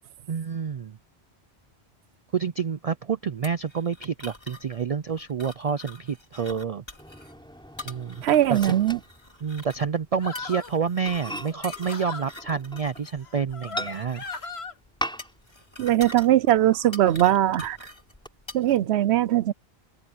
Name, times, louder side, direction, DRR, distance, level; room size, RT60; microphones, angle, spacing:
voice 1, 0.3-1.0 2.3-6.8 7.8-8.8 9.4-14.2, right 6 dB, 50° right, 0.4 m, -28 dB
sound 1, 3.4-18.8, left 2 dB, 25° left, 2.9 m, -45 dB
Microwave oven, 7.0-9.9 10.2-10.4 10.7-10.8 11.1-13.1 13.8-14.4 15.0-15.6 15.9-16.0 16.4-17.2 17.6-18.3, equal, 5° left, 7.4 m, -39 dB
voice 2, 8.2-9.0 15.8-17.8 18.5-19.5, right 13 dB, 80° right, 0.9 m, -20 dB
sound 2, 10.2-10.8 11.5-12.3 13.2-14.7, left 4 dB, 70° left, 1.9 m, -37 dB
open air
omnidirectional pair, 1.1 m